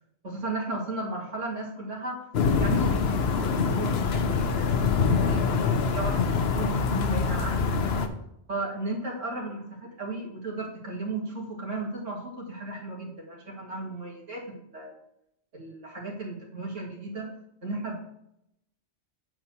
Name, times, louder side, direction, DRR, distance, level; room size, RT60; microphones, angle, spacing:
voice 1, 0.2-2.3 2.6-4.8 5.2-8.1 8.5-14.9 15.5-17.3 17.6-18.0, right 2 dB, 75° right, -3 dB, 2.6 m, -35 dB
sound 1, 2.3-8.1, left 5 dB, 60° left, 1.0 m, -25 dB
8.7 x 4.6 x 6.7 m, 0.78 s
omnidirectional pair, 1.3 m